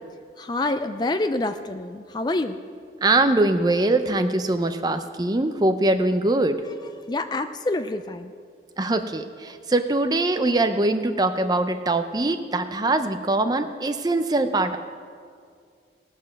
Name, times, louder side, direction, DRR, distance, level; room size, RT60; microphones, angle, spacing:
voice 1, 0.4-2.6 7.1-8.3, left 2 dB, 25° left, 9 dB, 0.4 m, -27 dB
voice 2, 3.0-6.6 8.8-14.8, right 2 dB, 25° right, 9 dB, 0.6 m, -22 dB
18.0 x 6.1 x 6.4 m, 2.2 s
head